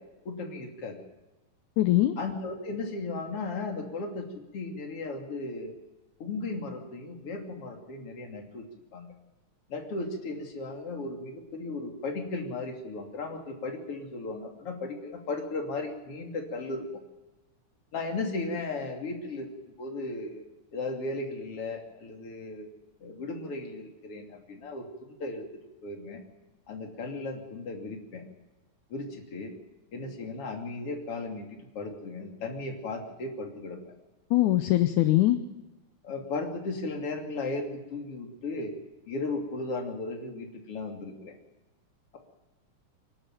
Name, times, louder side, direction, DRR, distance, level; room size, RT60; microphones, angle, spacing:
voice 1, 0.3-1.0 2.2-4.3 4.5-5.7 6.2-8.6 8.9-9.1 9.7-16.9 17.9-20.4 20.7-22.7 23.0-25.5 25.8-26.2 26.7-28.2 28.9-29.5 29.9-33.9 36.0-38.7 39.1-41.4, left 3 dB, 45° left, 2 dB, 3.6 m, -36 dB
voice 2, 1.8-2.2 34.3-35.4, left 15 dB, 75° left, 9 dB, 2.2 m, -22 dB
25.0 x 12.0 x 9.1 m, 1.1 s
omnidirectional pair, 3.6 m